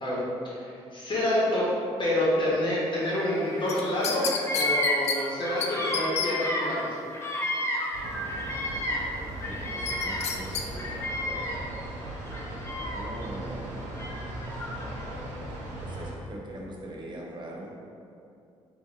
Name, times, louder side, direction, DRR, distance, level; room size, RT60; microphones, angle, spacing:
voice 1, 0.0-1.7 2.0-4.3 4.5-6.9, left 1 dB, 40° left, -6 dB, 1.3 m, -28 dB
Bird vocalization bird call bird song, 3.0-3.8 4.0-9.1 9.4-11.8 12.3-13.2 14.0-15.1, left 1 dB, 20° left, 0.7 m, -32 dB
sound 1, 3.7-5.2 5.6-5.7 5.9-6.3 9.9-10.7 11.0-11.1, left 6 dB, 65° left, 0.4 m, -29 dB
sound 2, 7.9-16.1, right 1 dB, 85° right, 0.7 m, -38 dB
voice 2, 9.4-11.0 12.9-13.8 15.8-17.7, right 1 dB, 40° right, -2 dB, 0.8 m, -41 dB
3.2 x 2.6 x 4.0 m, 2.6 s
supercardioid pair, 65°, 12 cm